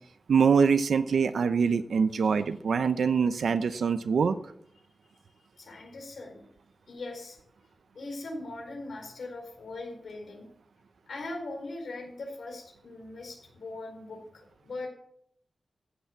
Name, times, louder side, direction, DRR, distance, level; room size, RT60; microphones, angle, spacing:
voice 1, 0.3-4.4, right 6 dB, 90° right, 11 dB, 0.7 m, -24 dB
voice 2, 5.6-6.5 6.9-7.4 7.9-10.5 11.1-14.9, left 2 dB, 75° left, 2 dB, 4.6 m, -40 dB
14.5 x 8.2 x 7.4 m, 0.71 s
wide cardioid pair, 165°, 0 cm